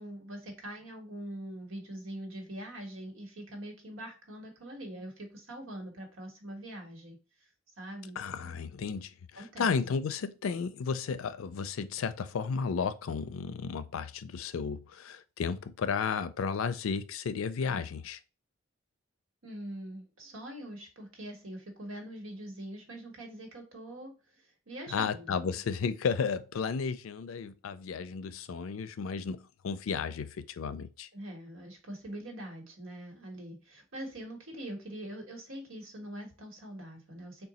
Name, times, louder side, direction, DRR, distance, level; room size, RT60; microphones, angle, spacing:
voice 1, 0.0-7.2 7.8-8.5 9.4-9.7 19.4-25.7 31.1-37.4, right 1 dB, 85° right, 1.3 m, -43 dB
voice 2, 8.2-18.2 24.9-31.1, left 5 dB, 90° left, 0.4 m, -33 dB
3.8 x 2.3 x 4.1 m
head